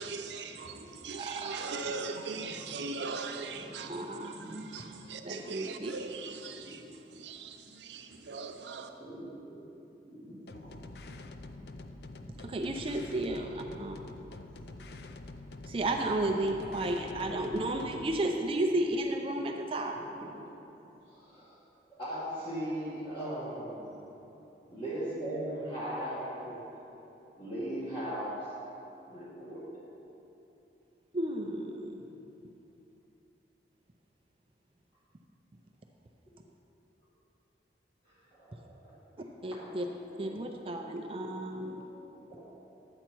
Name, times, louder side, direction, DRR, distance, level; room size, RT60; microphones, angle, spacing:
voice 1, 0.0-8.9, right 4 dB, 85° right, 5 dB, 0.7 m, -40 dB
voice 2, 0.7-1.0 3.6-4.1 4.3-4.5 6.6-6.9 9.0-9.6 10.1-10.8 13.6-13.8 19.8-20.4 21.1-21.5 21.9-23.9 24.7-26.6 27.4-28.4 29.1-29.6 38.0-38.8 39.2-39.3 40.8-41.0 41.6-41.9, right 1 dB, 30° left, -11 dB, 2.1 m, -39 dB
voice 3, 1.2-1.7 3.9-4.7 5.2-5.9 12.4-14.0 15.6-19.9 31.1-32.0 39.4-39.8 40.2-41.8, right 1 dB, 30° right, 3 dB, 0.4 m, -33 dB
sound 1, 10.5-18.2, left 2 dB, 65° left, 0.5 m, -46 dB
10.5 x 8.0 x 4.5 m, 3.0 s
head